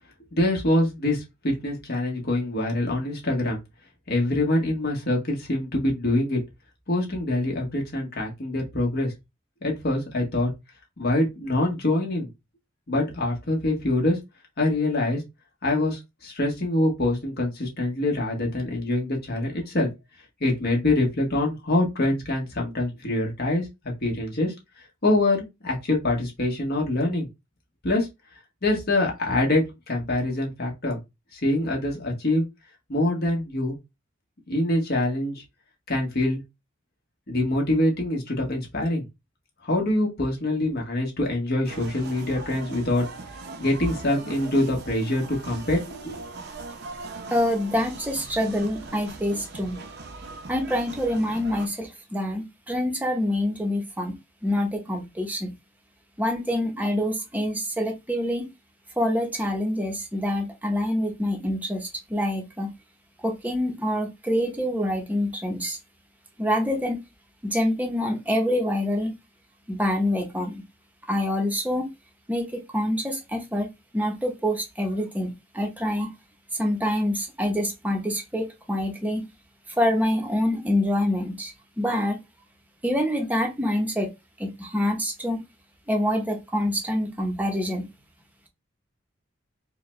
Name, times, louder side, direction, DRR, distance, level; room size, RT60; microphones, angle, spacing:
voice 1, 0.3-3.6 4.1-6.4 6.9-9.1 9.6-10.5 11.0-12.3 12.9-14.2 14.6-15.2 15.6-19.9 20.4-24.5 25.0-27.3 27.8-28.1 28.6-31.0 31.3-32.4 32.9-33.8 34.5-35.3 35.9-36.4 37.3-39.0 39.6-43.1 43.6-46.2, left 1 dB, 50° left, 1.3 m, -25 dB
sound 1, 41.6-51.7, right 3 dB, 55° right, 0.7 m, -40 dB
voice 2, 47.3-49.8 50.5-54.1 54.4-55.5 56.2-58.5 59.0-62.7 63.2-65.8 66.4-67.0 67.4-69.1 69.7-70.6 71.1-71.9 72.3-73.7 73.9-76.1 76.6-79.2 79.8-82.2 82.8-84.1 84.4-85.4 85.9-87.9, left 1 dB, 10° right, 0.8 m, -26 dB
4.5 x 2.3 x 3.1 m
head